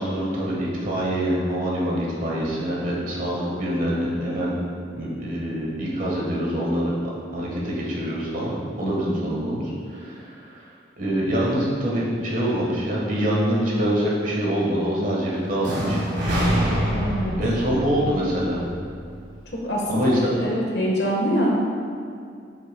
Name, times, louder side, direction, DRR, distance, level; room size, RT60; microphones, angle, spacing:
voice 1, 0.0-4.5 4.9-6.9 7.3-10.7 11.0-16.0 17.4-18.7 19.9-20.3, equal, 45° right, -5 dB, 1.4 m, -25 dB
voice 2, 8.8-9.2 16.9-17.4 19.5-21.5, equal, 60° left, -2 dB, 1.3 m, -25 dB
sound 1, 15.6-19.5, equal, 60° right, 1.6 m, -26 dB
8.4 x 6.4 x 2.3 m, 2.3 s
head